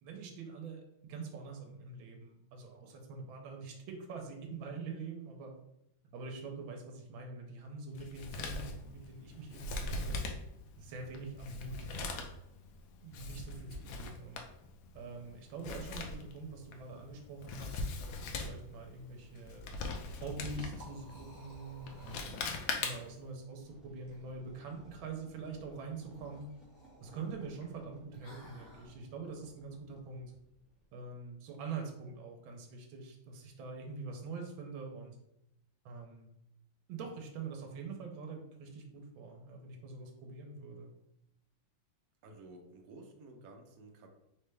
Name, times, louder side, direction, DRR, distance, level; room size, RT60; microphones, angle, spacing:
voice 1, 0.0-5.5 6.1-10.2 10.8-11.8 13.0-14.4 14.9-19.6 20.2-26.5 27.0-30.3 30.9-35.2 35.8-36.3 36.9-40.9, right 4 dB, 85° right, 2 dB, 1.5 m, -45 dB
Male speech man speaking, 7.9-23.3, left 3 dB, 85° left, 1.4 m, -41 dB
Liquid, 20.7-28.9, equal, 35° left, 0.7 m, -57 dB
sound 1, 23.6-30.9, right 1 dB, ahead, 0.5 m, -60 dB
voice 2, 42.2-44.1, right 2 dB, 60° right, 2 dB, 1.0 m, -53 dB
3.9 x 3.2 x 3.3 m, 0.81 s
omnidirectional pair, 2.2 m